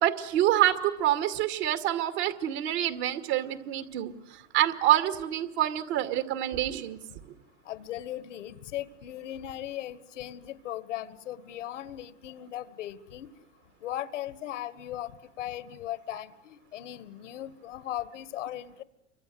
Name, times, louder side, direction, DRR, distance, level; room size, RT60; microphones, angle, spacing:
voice 1, 0.0-7.0, right 12 dB, 65° right, 8 dB, 2.3 m, -27 dB
voice 2, 7.7-13.3 13.8-18.8, left 12 dB, 85° left, 14 dB, 1.8 m, -38 dB
28.5 x 25.0 x 7.9 m, 0.82 s
supercardioid pair, 120°, 36 cm